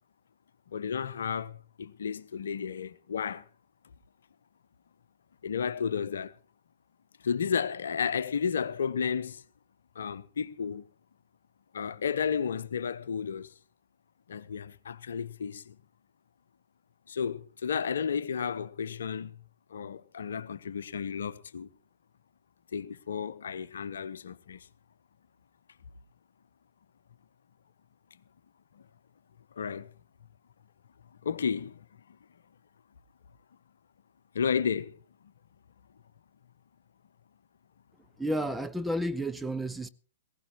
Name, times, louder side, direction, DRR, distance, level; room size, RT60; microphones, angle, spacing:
voice 1, 0.7-3.4 5.4-6.4 7.2-9.4 9.9-10.8 11.7-13.5 14.3-15.8 17.1-19.4 19.7-21.7 22.7-24.7 28.7-28.8 29.6-29.9 31.2-32.2 34.3-35.0, left 6 dB, 65° left, 0.9 m, -32 dB
voice 2, 38.2-39.9, equal, 5° right, 0.6 m, -31 dB
19.5 x 16.5 x 2.9 m
figure-of-eight pair, 115°, 0 cm